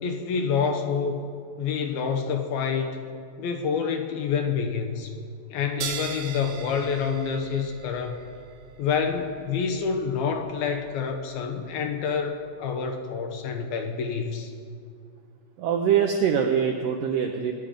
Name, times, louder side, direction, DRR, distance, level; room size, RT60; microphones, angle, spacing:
voice 1, 0.0-1.2 1.6-3.0 3.4-5.1 5.5-8.2 8.8-14.5, left 6 dB, 75° left, 4 dB, 2.5 m, -27 dB
sound 1, 5.8-12.8, right 8 dB, 70° right, 2.5 m, -41 dB
voice 2, 15.6-17.5, right 8 dB, 90° right, 3 dB, 1.9 m, -23 dB
22.5 x 10.5 x 5.2 m, 2.3 s
omnidirectional pair, 5.0 m